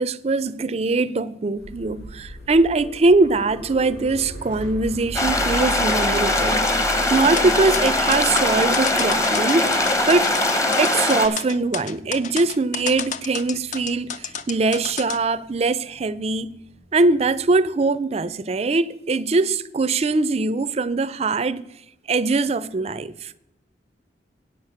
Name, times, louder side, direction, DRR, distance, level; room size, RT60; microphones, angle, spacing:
voice 1, 0.0-9.7 10.1-10.3 10.8-16.5 16.9-21.6 22.1-23.3, right 3 dB, 35° right, 0.4 m, -22 dB
sound 1, 1.6-17.5, equal, 65° left, 2.9 m, -38 dB
sound 2, 5.1-11.3, left 2 dB, 15° left, 0.9 m, -21 dB
sound 3, 7.2-15.2, left 7 dB, 45° left, 0.5 m, -31 dB
8.9 x 7.3 x 6.5 m
head